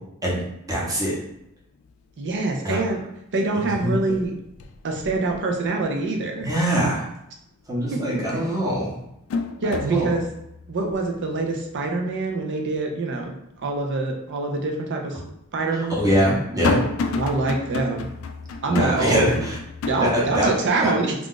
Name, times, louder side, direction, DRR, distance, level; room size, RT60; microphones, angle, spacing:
voice 1, 0.7-1.2 2.6-2.8 3.6-4.0 6.4-7.0 7.7-9.0 9.6-10.1 15.9-16.8 18.6-19.6 20.0-20.5 20.8-20.9, equal, 15° right, -5 dB, 0.9 m, -23 dB
sound 1, 1.3-1.4 1.8-2.4 2.7-3.5 3.8-6.1 6.5-6.6 8.0-8.1 8.6-13.8 14.2-14.3 15.2-20.5, left 4 dB, 65° left, 0.3 m, -32 dB
voice 2, 2.2-3.0 3.3-4.3 4.8-6.5 7.9-8.2 9.6-10.2 10.7-13.3 13.6-15.2 15.5-15.9 17.1-18.1 18.6-19.3 19.9-21.1, right 3 dB, 55° right, 2 dB, 0.5 m, -25 dB
2.4 x 2.4 x 3.7 m, 0.80 s
head